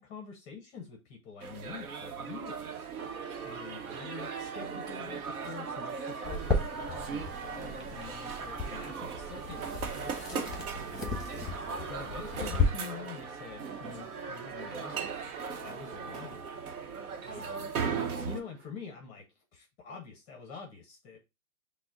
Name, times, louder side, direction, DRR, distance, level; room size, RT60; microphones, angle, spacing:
voice 1, 0.0-2.9 3.4-11.2 11.8-15.0 15.6-16.5 17.2-17.7 18.2-19.2 19.5-21.2, left 5 dB, 15° left, 2 dB, 0.6 m, -46 dB
sound 1, 1.4-18.4, right 6 dB, 75° right, 0.9 m, -39 dB
Church bell, 3.0-18.7, right 5 dB, 50° right, 0.9 m, -45 dB
sound 2, 6.2-12.7, left 4 dB, ahead, 0.9 m, -35 dB
6.0 x 2.1 x 3.6 m, 0.25 s
hypercardioid pair, 140°, 44 cm